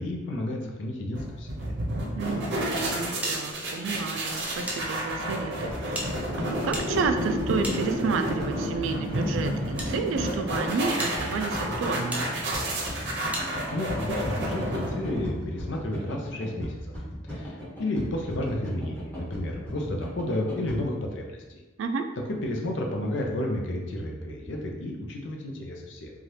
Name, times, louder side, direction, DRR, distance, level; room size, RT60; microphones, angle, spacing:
voice 1, 0.0-1.6 13.7-16.7 17.3-21.6 22.3-26.1, left 1 dB, 70° left, 1 dB, 0.5 m, -31 dB
sound 1, 1.2-15.5, equal, 65° right, 0.7 m, -30 dB
voice 2, 2.1-6.0 6.4-12.4 21.8-22.1, right 4 dB, 80° right, 8 dB, 0.3 m, -31 dB
sound 2, 3.2-4.8 5.1-5.2 5.9-8.4 9.2-9.9 10.5-10.6 11.0-11.2 12.1-12.3 13.3-13.5, right 1 dB, 10° right, 0.4 m, -36 dB
sound 3, 5.5-20.8, equal, 10° left, 1.0 m, -38 dB
2.7 x 2.4 x 3.2 m, 1.1 s
head